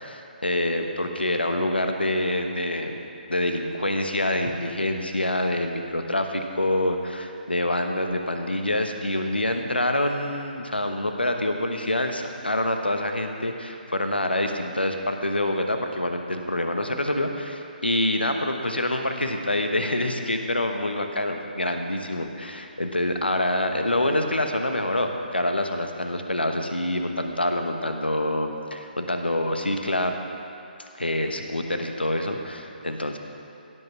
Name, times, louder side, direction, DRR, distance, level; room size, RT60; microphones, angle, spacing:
voice 1, 0.0-3.0 3.3-30.2 30.8-33.2, left 1 dB, 85° left, 5 dB, 1.1 m, -26 dB
16.5 x 5.6 x 6.1 m, 2.6 s
figure-of-eight pair, 140°, 5 cm